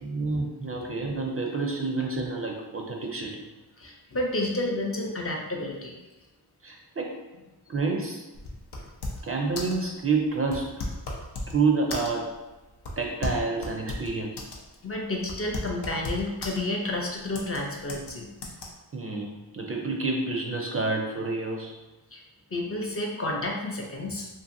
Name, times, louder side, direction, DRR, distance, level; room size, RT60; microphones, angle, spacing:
voice 1, 0.0-3.4 6.6-7.1 7.7-8.2 9.2-10.7 11.5-12.3 13.0-14.3 18.9-21.7, right 3 dB, 35° right, 1 dB, 0.4 m, -28 dB
voice 2, 3.8-6.0 14.8-18.3 22.1-22.2 22.5-24.3, left 1 dB, 35° left, 0 dB, 0.5 m, -30 dB
sound 1, 8.4-9.3 9.6-9.8 10.5-11.6 11.9-12.3 12.9-14.6 14.9-15.0 15.3-16.6 17.3-17.6 17.9-18.1 18.4-18.7, left 2 dB, 85° left, 0.6 m, -34 dB
2.7 x 2.6 x 2.5 m, 1.1 s
wide cardioid pair, 75°, 40 cm